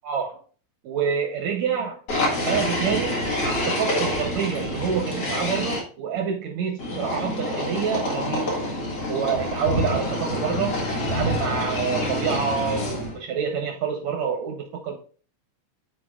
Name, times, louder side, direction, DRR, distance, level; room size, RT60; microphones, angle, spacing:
voice 1, 0.0-0.4 0.8-2.0 2.4-8.6 9.1-10.8 11.1-15.0, right 7 dB, 75° right, 4 dB, 1.6 m, -27 dB
sound 1, 2.1-5.8 6.8-13.2, left 1 dB, 45° left, 2.6 m, -27 dB
11.0 x 4.5 x 2.4 m, 0.40 s
omnidirectional pair, 4.0 m